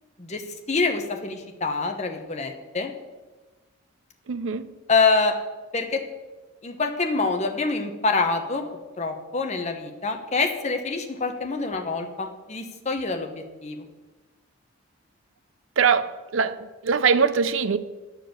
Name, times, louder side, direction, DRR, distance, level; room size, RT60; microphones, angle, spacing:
voice 1, 0.7-2.9 4.9-5.3 5.7-6.0 6.6-8.6 9.0-13.9, left 4 dB, 30° left, 0.9 m, -26 dB
voice 2, 4.3-4.7 15.8-16.6 16.8-17.8, right 6 dB, 60° right, 0.5 m, -22 dB
10.5 x 4.7 x 7.8 m
head